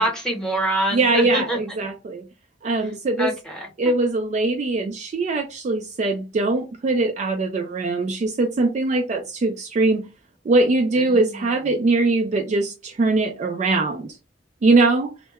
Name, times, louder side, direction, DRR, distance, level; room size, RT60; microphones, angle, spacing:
voice 1, 0.0-1.6 3.2-3.7 11.0-11.4, right 1 dB, 5° left, 0.9 m, -25 dB
voice 2, 0.9-2.2 2.6-3.3 3.8-10.1 10.5-14.2 14.6-15.1, right 3 dB, 40° right, 0.3 m, -21 dB
2.2 x 2.1 x 2.8 m
head